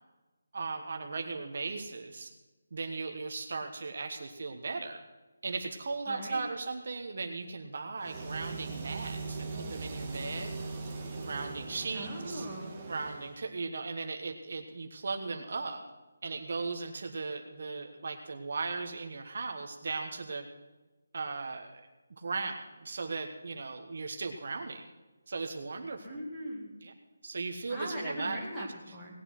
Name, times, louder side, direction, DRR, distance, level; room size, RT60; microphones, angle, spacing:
voice 1, 0.5-2.3 2.7-5.0 5.4-10.6 11.2-12.5 12.9-15.8 16.2-20.5 21.1-24.9 25.3-26.1 26.8-26.9 27.2-28.7, right 4 dB, 45° right, 4 dB, 1.3 m, -37 dB
voice 2, 6.1-6.4 11.9-12.8 26.0-26.8 27.7-29.2, equal, 5° left, -6 dB, 2.4 m, -39 dB
sound 1, 8.0-13.3, right 3 dB, 10° right, 1.7 m, -40 dB
18.5 x 8.9 x 6.0 m, 1.2 s
hypercardioid pair, 175°, 0 cm